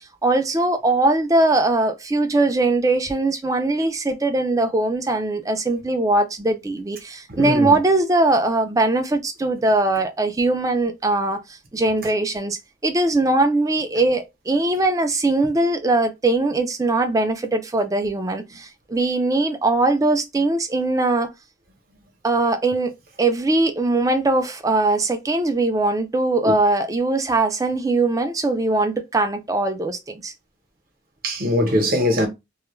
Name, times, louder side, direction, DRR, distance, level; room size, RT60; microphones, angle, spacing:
voice 1, 0.0-21.3 22.2-30.3, right 2 dB, 20° right, 0.4 m, -21 dB
voice 2, 7.3-7.8 31.2-32.3, left 1 dB, 50° right, 0.9 m, -21 dB
2.3 x 2.1 x 3.1 m
head